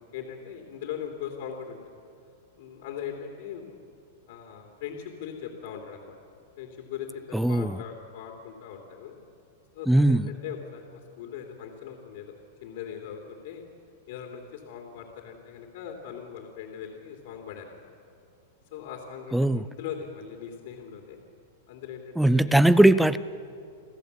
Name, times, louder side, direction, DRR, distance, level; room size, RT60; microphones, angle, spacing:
voice 1, 0.1-1.9 2.6-3.8 4.3-6.2 6.6-9.1 9.7-12.3 12.6-13.6 14.1-17.9 18.7-21.2 21.7-22.5, left 8 dB, 60° left, 3.3 m, -40 dB
voice 2, 7.3-7.8 9.9-10.3 19.3-19.6 22.2-23.2, right 1 dB, ahead, 0.5 m, -19 dB
29.0 x 14.5 x 8.5 m
supercardioid pair, 150°, 0 cm